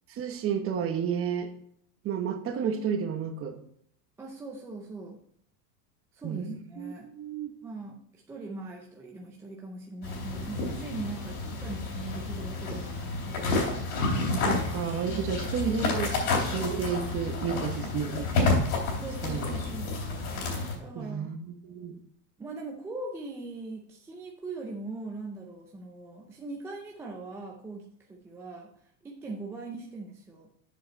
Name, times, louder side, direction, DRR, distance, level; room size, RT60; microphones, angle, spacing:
voice 1, 0.1-1.5 2.0-3.6 6.2-7.5 14.1-18.6 19.2-19.6 20.9-22.0, right 7 dB, 30° right, 7 dB, 1.0 m, -32 dB
voice 2, 4.2-5.2 6.1-7.1 7.6-13.8 15.1-15.2 18.9-20.0 20.8-21.3 22.4-28.7 29.0-30.5, right 3 dB, 5° right, 0 dB, 0.3 m, -41 dB
sound 1, 10.0-20.7, left 3 dB, 80° left, 3.5 m, -30 dB
7.6 x 6.0 x 4.2 m, 0.67 s
supercardioid pair, 140°, 47 cm